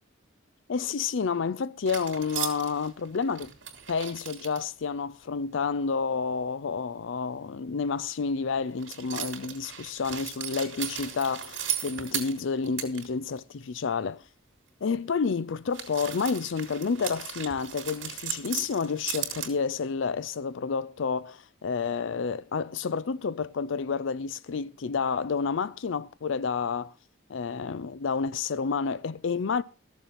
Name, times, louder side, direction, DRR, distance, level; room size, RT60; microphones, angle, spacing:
voice 1, 0.7-3.5 3.9-14.2 14.8-26.9 27.3-29.6, left 5 dB, 65° left, 0.5 m, -30 dB
sound 1, 1.8-4.6 8.8-13.1 13.4-13.5 15.7-19.5, right 9 dB, 65° right, 2.9 m, -36 dB
14.0 x 7.2 x 5.7 m
head